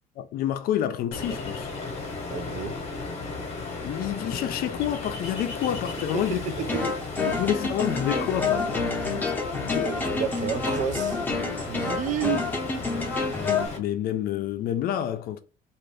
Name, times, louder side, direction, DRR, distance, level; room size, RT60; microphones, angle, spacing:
voice 1, 0.2-1.7 3.8-6.5 7.3-8.9 9.5-9.9 13.4-15.4, left 11 dB, 60° left, 0.5 m, -29 dB
Ocean, 1.1-13.8, left 3 dB, 40° left, 1.0 m, -35 dB
voice 2, 2.3-2.8 6.1-7.0 7.3-7.4 9.1-9.2 9.6-11.2 11.6-12.5, right 8 dB, 45° right, 0.4 m, -31 dB
sound 1, 6.6-13.7, left 4 dB, 10° left, 0.7 m, -28 dB
2.5 x 2.5 x 3.3 m
cardioid pair, 145°, 17 cm